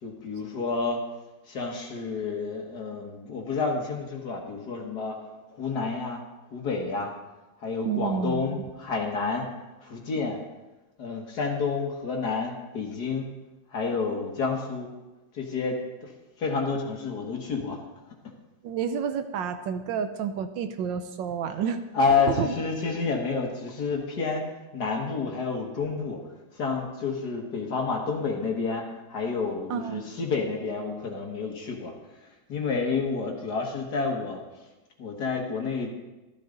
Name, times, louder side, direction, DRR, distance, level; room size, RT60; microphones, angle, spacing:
voice 1, 0.0-1.0 1.5-5.2 5.5-6.2 6.5-7.1 7.6-9.5 9.8-10.4 11.0-13.2 13.7-14.9 15.3-16.1 16.4-17.8 21.9-24.5 24.7-26.2 26.5-31.9 32.5-34.4 35.0-35.9, left 4 dB, 55° left, 1 dB, 2.0 m, -29 dB
voice 2, 7.8-8.6 18.6-21.8 22.3-22.5 29.7-30.1, right 7 dB, 75° right, 9 dB, 1.3 m, -30 dB
13.5 x 12.5 x 3.9 m, 1.1 s
omnidirectional pair, 2.2 m